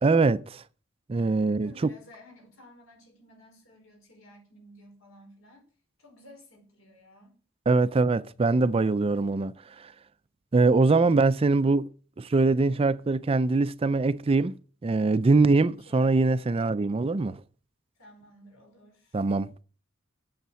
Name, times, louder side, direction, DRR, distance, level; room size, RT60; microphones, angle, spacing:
voice 1, 0.0-0.6 1.1-1.7 7.7-9.9 10.5-11.9 12.2-14.5 14.8-17.4 19.1-19.6, right 3 dB, 30° right, 0.4 m, -23 dB
voice 2, 1.5-5.6 6.0-7.4 15.6-16.2 18.0-19.2, left 1 dB, 80° left, 4.6 m, -54 dB
8.2 x 7.3 x 7.5 m
head